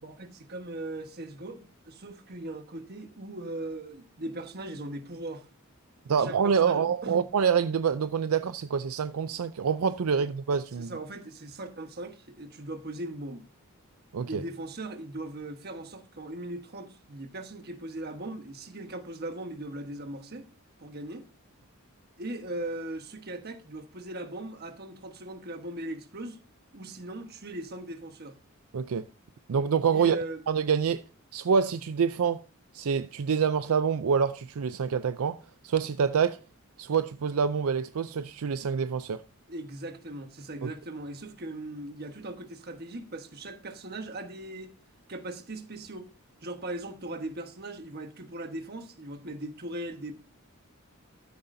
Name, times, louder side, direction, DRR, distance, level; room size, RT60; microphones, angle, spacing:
voice 1, 0.0-5.5 6.1-7.2 10.1-10.2 10.8-13.4 14.3-20.5 20.8-21.2 22.2-26.4 26.7-28.4 29.9-30.4 39.5-44.7 45.1-46.1 46.4-50.1, right 1 dB, 45° right, 1.3 m, -39 dB
voice 2, 6.1-10.9 14.1-14.4 28.7-29.1 29.5-30.2 30.5-31.0 31.3-32.4 32.7-36.4 36.8-39.2 40.6-40.7, right 6 dB, 75° right, 0.4 m, -26 dB
13.0 x 9.6 x 2.6 m
head